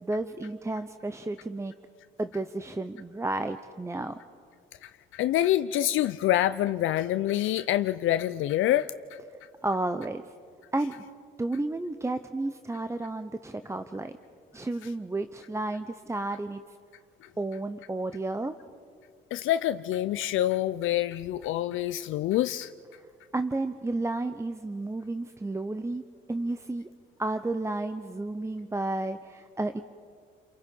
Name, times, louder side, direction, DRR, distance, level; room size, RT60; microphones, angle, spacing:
voice 1, 0.0-1.7 2.2-4.2 9.6-10.2 10.7-11.0 11.4-14.1 14.5-16.6 17.4-18.6 23.3-26.0 26.3-26.9 27.2-29.8, right 2 dB, 15° right, 9 dB, 0.8 m, -32 dB
voice 2, 4.8-9.2 17.2-17.3 19.3-22.7, left 13 dB, 80° left, 11 dB, 0.5 m, -26 dB
30.0 x 23.5 x 5.4 m, 2.2 s
cardioid pair, 90°, 20 cm